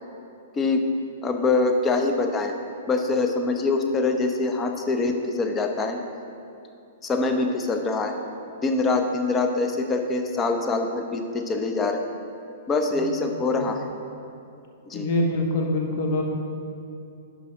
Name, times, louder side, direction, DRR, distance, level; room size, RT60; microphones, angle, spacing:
voice 1, 0.5-0.9 1.2-2.5 2.9-6.0 7.0-8.1 8.5-12.0 12.7-13.8 14.9-15.1, left 3 dB, 20° left, 5 dB, 0.7 m, -24 dB
voice 2, 14.9-16.2, left 1 dB, 45° left, 1 dB, 1.2 m, -24 dB
10.0 x 5.7 x 3.7 m, 2.7 s
figure-of-eight pair, 110°, 0 cm